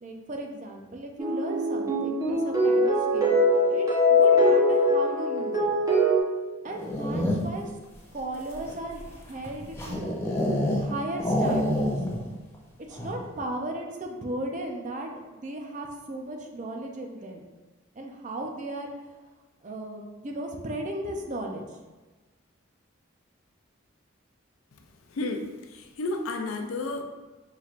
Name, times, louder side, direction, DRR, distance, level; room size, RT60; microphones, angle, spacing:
voice 1, 0.0-3.4 3.7-5.7 6.6-7.7 8.1-10.1 10.8-11.9 12.9-17.4 18.0-18.9 19.6-21.6, right 1 dB, 35° right, 2 dB, 0.5 m, -36 dB
sound 1, 1.2-6.2, left 1 dB, 15° right, 0.9 m, -22 dB
sound 2, 6.7-7.7 8.3-10.9 11.2-12.3 12.5-12.6 12.9-13.3, left 1 dB, 10° left, 0.5 m, -27 dB
voice 2, 25.1-27.0, left 2 dB, 75° left, 4 dB, 0.5 m, -32 dB
5.7 x 3.2 x 2.5 m, 1.2 s
head